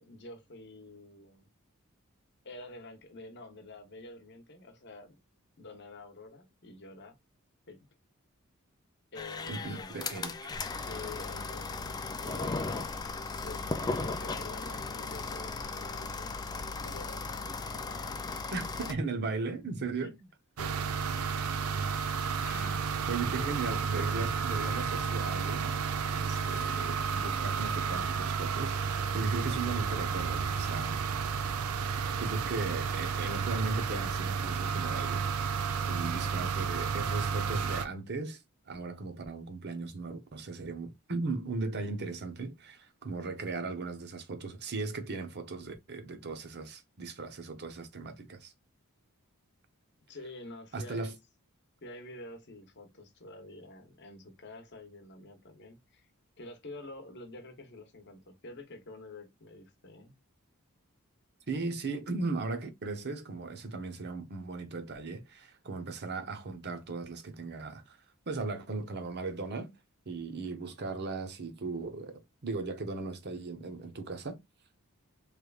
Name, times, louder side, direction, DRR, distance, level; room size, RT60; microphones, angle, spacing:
voice 1, 0.0-1.5 2.4-5.1 5.6-7.2 7.7-7.9 9.1-10.0 10.9-12.7 13.4-18.4 20.0-20.3 20.6-21.2 22.4-23.0 23.4-23.5 50.1-51.1 51.8-56.1 56.4-60.1, left 2 dB, 55° left, 0.9 m, -48 dB
sound 1, 9.1-18.9, left 3 dB, 20° left, 0.3 m, -36 dB
voice 2, 9.5-10.6 18.5-20.2 22.4-22.6 23.1-25.7 26.2-31.0 31.9-35.4 35.8-48.5 50.7-51.1 61.5-68.0 68.3-69.7 70.1-74.4, right 3 dB, 50° right, 0.8 m, -37 dB
sound 2, 20.6-37.8, right 6 dB, 80° right, 0.5 m, -32 dB
3.3 x 3.2 x 2.3 m
head